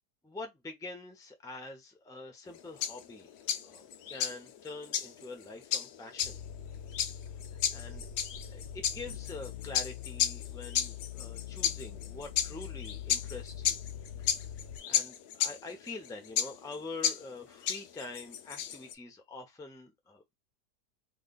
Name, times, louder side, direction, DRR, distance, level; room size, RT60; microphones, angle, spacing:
voice 1, 0.2-3.3 3.6-6.4 7.7-8.1 8.5-13.8 14.9-20.2, left 3 dB, 5° left, 0.4 m, -45 dB
sound 1, 2.5-18.9, left 9 dB, 75° left, 1.1 m, -34 dB
sound 2, 6.2-14.8, left 9 dB, 50° left, 0.6 m, -43 dB
3.2 x 2.2 x 3.8 m
omnidirectional pair, 1.7 m